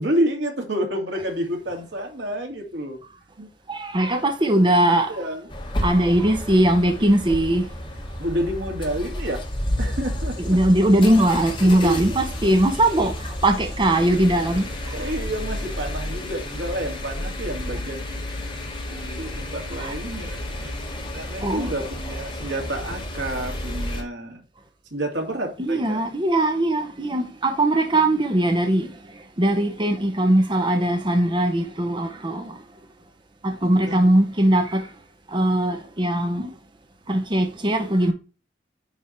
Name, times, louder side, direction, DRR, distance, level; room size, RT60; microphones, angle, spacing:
voice 1, 0.0-3.0 3.4-3.5 5.1-5.4 8.2-9.4 9.8-10.4 11.6-12.0 13.0-13.1 14.9-18.2 18.9-24.4 24.9-26.0 33.9-34.1, right 1 dB, 85° right, 2.5 m, -29 dB
voice 2, 3.7-5.2 5.8-7.7 10.4-15.1 19.8-20.0 21.4-21.7 25.6-29.0 29.4-32.6 33.4-34.9 35.3-36.5 37.1-38.1, right 1 dB, 25° right, 0.9 m, -20 dB
sound 1, 5.5-24.0, left 1 dB, 30° left, 1.8 m, -31 dB
9.7 x 3.6 x 4.5 m
head